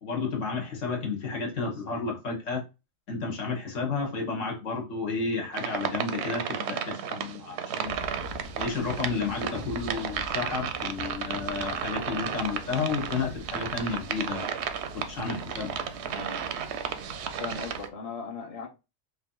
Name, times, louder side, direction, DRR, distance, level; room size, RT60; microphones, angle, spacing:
voice 1, 0.0-2.6 3.1-7.9 8.6-14.5 14.9-15.9, left 4 dB, 70° left, 1.4 m, -32 dB
sound 1, 5.5-17.9, right 8 dB, 65° right, 0.7 m, -34 dB
sound 2, 7.8-17.9, left 4 dB, 85° left, 1.1 m, -45 dB
voice 2, 9.6-10.1 16.0-16.5 17.4-18.7, left 4 dB, 30° left, 0.9 m, -39 dB
3.3 x 2.7 x 3.7 m
omnidirectional pair, 1.4 m